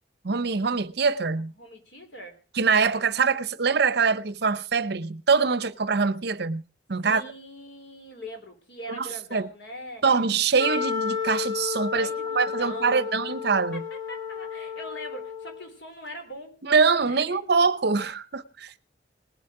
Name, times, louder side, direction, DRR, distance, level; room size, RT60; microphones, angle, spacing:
voice 1, 0.2-1.5 2.5-6.6 6.9-7.2 8.9-9.5 10.0-12.1 12.4-13.8 16.6-18.8, right 5 dB, 65° right, 0.8 m, -24 dB
voice 2, 1.3-2.4 7.0-10.3 11.9-13.1 13.9-16.6 17.1-17.4 18.0-18.1, equal, 75° left, 3.5 m, -41 dB
Wind instrument woodwind instrument, 10.6-15.7, left 6 dB, 25° left, 2.4 m, -32 dB
19.5 x 8.3 x 4.9 m
head